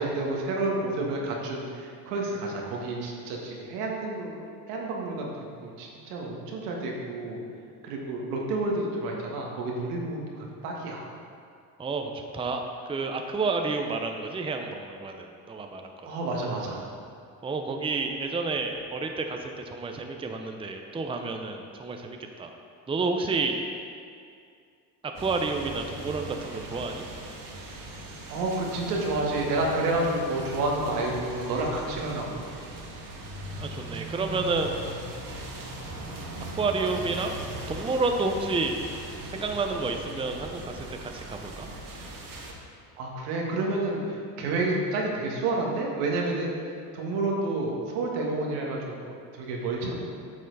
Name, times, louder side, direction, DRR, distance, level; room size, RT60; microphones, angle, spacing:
voice 1, 0.0-4.3 4.7-5.3 5.6-7.4 7.8-11.0 16.0-16.9 28.3-32.5 42.9-46.5 46.9-49.9, right 2 dB, 80° right, -1 dB, 1.8 m, -30 dB
voice 2, 11.8-12.6 12.9-15.9 17.4-22.6 22.9-23.5 25.0-27.0 33.6-34.8 36.6-37.4 37.7-38.7 39.3-41.7, right 3 dB, 10° right, 4 dB, 0.7 m, -30 dB
sound 1, 25.1-42.5, right 2 dB, 45° right, 1.7 m, -40 dB
9.5 x 6.4 x 4.0 m, 2.3 s
hypercardioid pair, 80°, 46 cm